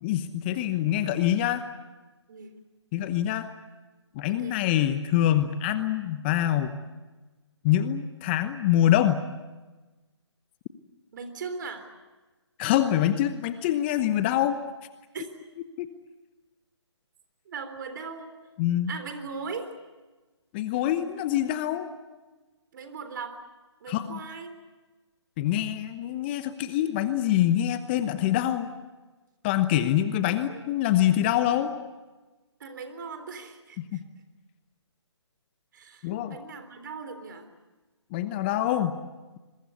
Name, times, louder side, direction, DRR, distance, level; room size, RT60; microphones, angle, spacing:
voice 1, 0.0-1.6 2.9-3.5 4.1-6.8 7.6-9.2 12.6-14.6 15.8-15.9 18.6-18.9 20.5-21.9 23.9-24.2 25.4-28.7 29.4-31.7 33.9-34.0 36.0-36.4 38.1-39.0, left 12 dB, 20° left, 11 dB, 1.0 m, -25 dB
voice 2, 4.3-4.6 11.1-11.9 15.1-15.3 17.5-18.3 18.9-19.7 22.7-23.4 23.8-24.5 30.2-30.6 32.6-33.8 35.7-37.5, right 5 dB, 45° right, 8 dB, 3.7 m, -39 dB
26.5 x 22.5 x 8.4 m, 1.2 s
figure-of-eight pair, 145°, 15 cm